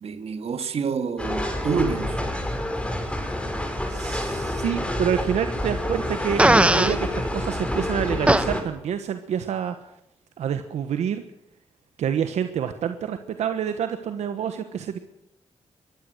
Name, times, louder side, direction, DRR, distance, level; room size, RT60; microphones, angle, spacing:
voice 1, 0.0-2.2, right 6 dB, 65° right, 1.9 m, -27 dB
sound 1, 1.2-8.6, left 1 dB, 10° left, 5.5 m, -28 dB
voice 2, 3.9-9.7 10.4-11.2 12.0-15.0, right 8 dB, 85° right, 1.3 m, -27 dB
Fart, 6.4-7.0 8.3-8.4, right 1 dB, 10° right, 1.1 m, -17 dB
22.0 x 15.0 x 7.9 m
cardioid pair, 70°, 11 cm